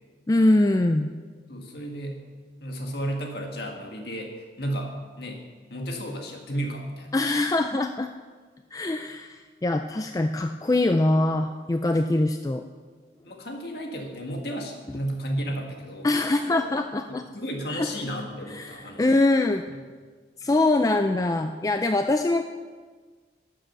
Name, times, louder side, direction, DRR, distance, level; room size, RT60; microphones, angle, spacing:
voice 1, 0.3-1.1 7.1-8.1 8.7-12.6 16.0-17.2 17.7-17.9 18.5-19.6 20.4-22.5, left 2 dB, 20° left, 6 dB, 0.3 m, -23 dB
voice 2, 1.5-2.2 2.6-5.4 5.7-7.2 13.2-16.1 16.4-16.6 17.1-19.1 19.7-19.8, equal, 60° left, 2 dB, 1.8 m, -33 dB
12.0 x 7.6 x 6.6 m, 1.5 s
head